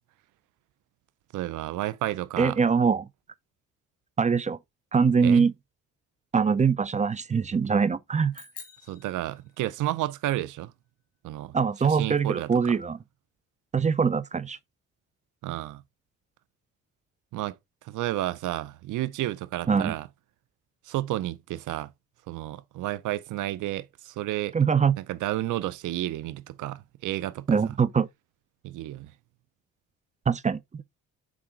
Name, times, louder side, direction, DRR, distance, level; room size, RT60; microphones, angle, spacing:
voice 1, 1.3-2.6 5.2-5.5 8.9-10.7 11.2-12.8 15.4-15.8 17.3-17.6 17.8-20.1 20.8-21.9 22.3-24.5 25.0-27.7 28.6-29.1, right 15 dB, 80° right, 0.6 m, -31 dB
voice 2, 2.4-3.1 4.2-4.6 4.9-5.5 6.3-8.3 11.5-13.0 13.7-14.6 19.7-19.9 24.5-25.0 27.5-28.1 30.3-30.8, right 6 dB, 25° right, 0.5 m, -23 dB
sound 1, 8.3-10.0, left 6 dB, 50° left, 2.3 m, -48 dB
6.2 x 3.7 x 4.3 m
cardioid pair, 90°, 30 cm